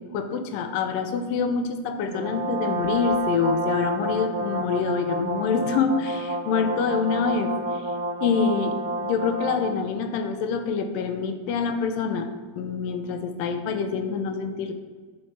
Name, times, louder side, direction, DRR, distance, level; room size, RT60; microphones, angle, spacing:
voice 1, 0.1-7.8 8.2-8.8 9.0-12.3 12.6-14.7, left 5 dB, 85° left, 7 dB, 2.3 m, -26 dB
Brass instrument, 2.1-9.9, right 1 dB, 80° right, 1.1 m, -29 dB
11.0 x 4.6 x 4.3 m, 1.4 s
omnidirectional pair, 4.0 m